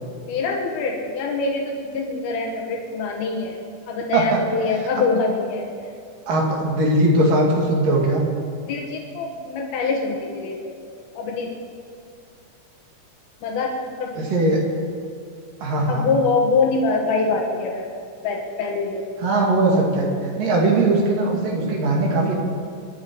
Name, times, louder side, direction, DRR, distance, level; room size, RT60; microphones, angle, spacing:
voice 1, 0.2-3.6 3.9-5.6 8.7-10.7 11.1-11.5 13.4-14.1 15.9-17.9 18.2-19.0, left 4 dB, 85° left, 0 dB, 3.3 m, -24 dB
voice 2, 6.3-8.2 14.2-14.6 15.6-16.1 19.2-20.1 20.4-22.4, right 2 dB, 65° right, -1 dB, 3.8 m, -19 dB
26.0 x 11.0 x 4.7 m, 2.2 s
omnidirectional pair, 4.3 m